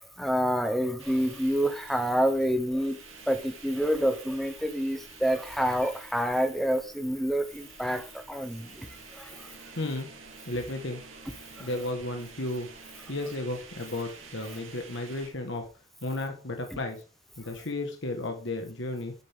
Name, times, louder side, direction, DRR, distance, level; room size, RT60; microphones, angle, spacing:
voice 1, 0.0-3.0 3.3-8.9 9.1-9.5 11.6-11.7, equal, ahead, 8 dB, 0.9 m, -28 dB
sound 1, 1.0-15.3, right 4 dB, 70° right, 2.7 m, -49 dB
voice 2, 9.8-10.1 10.4-11.0 11.6-12.7 13.1-15.7 16.0-17.0 17.4-19.1, left 2 dB, 60° left, 4 dB, 1.5 m, -33 dB
9.4 x 8.9 x 3.6 m, 0.36 s
head